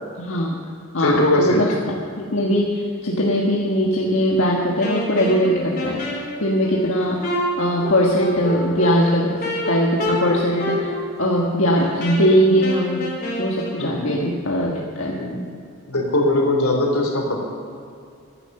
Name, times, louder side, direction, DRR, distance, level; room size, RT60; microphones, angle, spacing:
voice 1, 0.2-0.6 0.9-1.7 2.2-13.1 13.4-14.7 15.0-15.2, equal, 65° left, -3 dB, 1.5 m, -20 dB
voice 2, 1.0-1.6 13.8-14.1 15.2-15.4 15.9-17.4, left 1 dB, 85° left, 2 dB, 3.0 m, -20 dB
Wind instrument woodwind instrument, 4.8-13.8, left 1 dB, 45° left, 3.7 m, -28 dB
15.0 x 11.0 x 6.6 m, 2.4 s
head